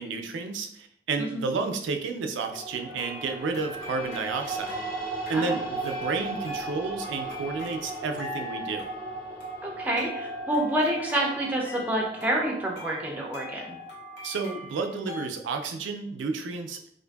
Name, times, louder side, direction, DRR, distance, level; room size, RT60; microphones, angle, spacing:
voice 1, 0.0-4.8 5.3-8.9 14.2-17.0, right 4 dB, 90° right, 6 dB, 0.3 m, -31 dB
sound 1, 2.5-14.7, right 3 dB, 25° left, 0.7 m, -37 dB
sound 2, 2.9-15.3, left 2 dB, 75° left, 0.9 m, -43 dB
voice 2, 9.6-13.8, right 1 dB, 10° right, -2 dB, 0.4 m, -28 dB
2.5 x 2.5 x 2.2 m, 0.69 s
head